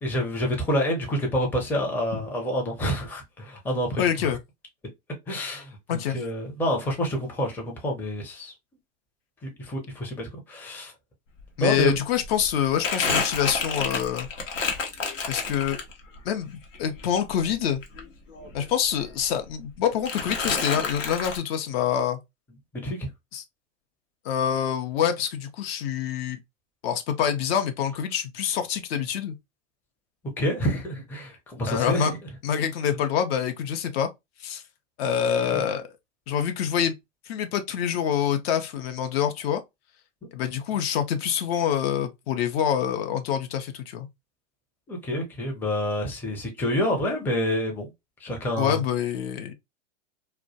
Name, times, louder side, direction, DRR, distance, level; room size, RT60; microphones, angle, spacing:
voice 1, 0.0-4.0 5.3-5.8 6.1-8.5 9.4-10.9 11.6-11.9 22.7-23.1 30.4-32.2 35.2-35.6 44.9-47.9 48.2-48.8, equal, 5° left, 0.5 m, -28 dB
voice 2, 4.0-4.4 5.9-6.2 11.6-14.3 15.3-15.8 16.2-16.5 16.8-17.8 18.5-22.2 23.3-23.4 24.2-26.4 26.8-29.4 31.7-32.1 32.4-34.1 34.4-34.6 35.0-35.9 36.3-36.9 37.3-39.6 40.3-44.1 48.6-49.5, left 9 dB, 55° left, 0.5 m, -26 dB
Crumpling crinkling, 11.4-11.5 11.7-16.2 16.6-18.7 19.0-19.7 20.0-21.4, left 4 dB, 85° left, 0.8 m, -30 dB
2.3 x 2.1 x 2.6 m
hypercardioid pair, 105°, 37 cm